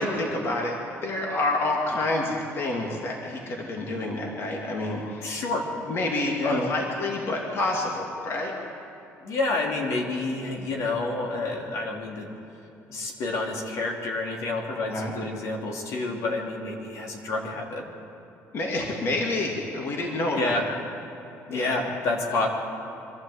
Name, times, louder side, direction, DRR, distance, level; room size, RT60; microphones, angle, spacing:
voice 1, 0.0-5.4 5.9-8.5 14.9-15.1 18.5-20.6 21.5-21.8, left 2 dB, 50° left, 0 dB, 2.6 m, -28 dB
voice 2, 5.2-5.7 6.4-6.6 9.2-12.3 12.9-17.8 20.3-20.6 21.5-22.5, left 2 dB, 70° left, 0 dB, 3.1 m, -29 dB
25.5 x 12.5 x 8.0 m, 2.9 s
cardioid pair, 120°, 6 cm